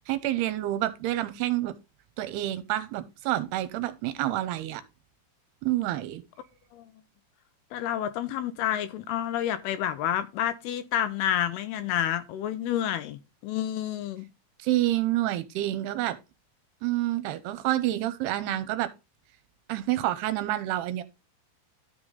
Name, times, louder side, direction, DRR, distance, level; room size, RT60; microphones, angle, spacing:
voice 1, 0.1-1.7 2.2-4.8 5.6-6.2 14.6-16.2 16.8-18.9 19.7-21.0, right 14 dB, 85° right, 2.6 m, -28 dB
voice 2, 7.7-14.3, left 11 dB, 80° left, 2.5 m, -29 dB
12.5 x 4.9 x 3.9 m
omnidirectional pair, 4.9 m